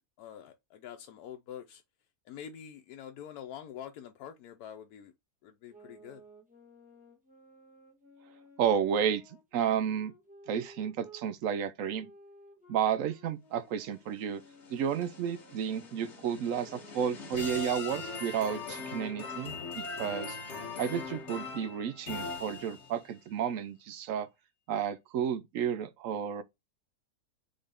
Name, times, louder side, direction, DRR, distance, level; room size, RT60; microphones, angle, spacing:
voice 1, 0.2-1.8 2.3-5.1 5.4-6.2, left 9 dB, 90° left, 1.1 m, -46 dB
sound 1, 5.7-11.3 11.9-17.4, equal, 5° right, 1.4 m, -57 dB
voice 2, 8.6-9.2 9.5-10.1 10.5-12.1 12.7-14.4 14.7-20.4 20.8-24.3 24.7-26.4, right 8 dB, 70° right, 0.9 m, -32 dB
sound 2, 14.2-23.1, left 4 dB, 50° left, 1.6 m, -41 dB
4.0 x 3.6 x 3.4 m
omnidirectional pair, 1.6 m